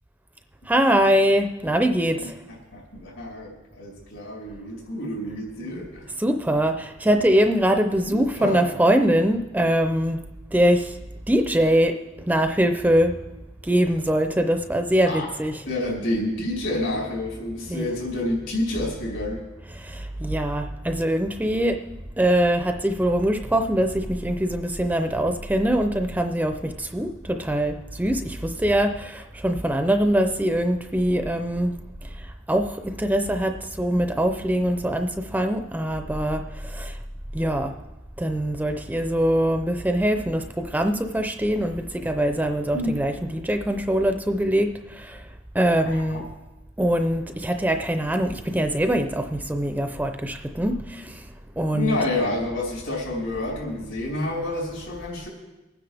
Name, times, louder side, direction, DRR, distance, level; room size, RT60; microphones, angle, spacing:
voice 1, 0.7-2.4 6.2-10.2 10.5-10.9 11.3-12.0 12.3-13.1 13.6-15.6 17.7-17.9 19.7-21.8 22.2-31.8 32.5-37.0 37.3-37.7 38.2-45.2 45.5-46.2 46.8-51.2 51.6-52.0, right 1 dB, 10° right, 6 dB, 0.5 m, -23 dB
voice 2, 2.5-6.1 8.0-8.7 15.1-15.3 15.7-19.4 42.7-43.0 45.9-46.2 51.7-55.3, left 1 dB, 80° left, -2 dB, 5.2 m, -29 dB
23.5 x 9.7 x 3.5 m, 1.0 s
head